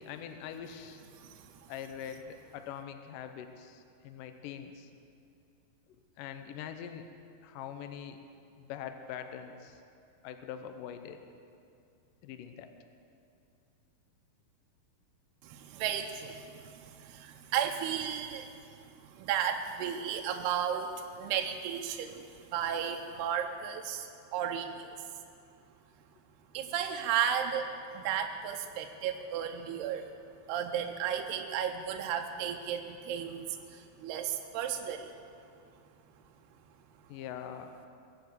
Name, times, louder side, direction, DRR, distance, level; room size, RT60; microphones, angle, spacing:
voice 1, 0.0-1.0 1.7-4.9 6.2-7.1 7.4-8.2 8.6-9.8 10.2-11.2 12.2-12.7 37.1-37.7, left 9 dB, 85° left, 7 dB, 1.9 m, -43 dB
voice 2, 1.2-1.7 15.4-18.5 19.0-25.0 26.5-30.1 30.5-35.1, right 8 dB, 80° right, 4 dB, 2.6 m, -34 dB
22.0 x 7.7 x 7.9 m, 2.5 s
omnidirectional pair, 4.9 m